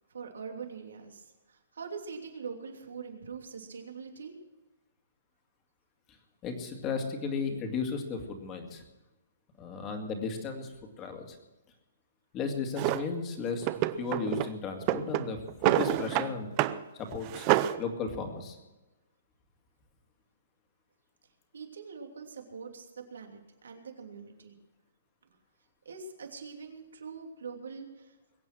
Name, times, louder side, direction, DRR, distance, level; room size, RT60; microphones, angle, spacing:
voice 1, 0.1-1.2 1.7-4.3 21.5-24.5 25.8-28.1, right 5 dB, 90° right, 3 dB, 3.0 m, -43 dB
voice 2, 6.4-8.8 9.6-11.4 12.3-13.7 14.0-16.5 16.9-17.5 17.8-18.6, left 4 dB, 20° left, 4 dB, 2.1 m, -35 dB
Drawer open or close, 12.8-13.0 13.6-14.5 14.8-16.3 16.6-16.8 17.1-17.8, right 15 dB, 25° right, 0.5 m, -27 dB
22.0 x 8.8 x 6.2 m, 1.1 s
hypercardioid pair, 165°, 0 cm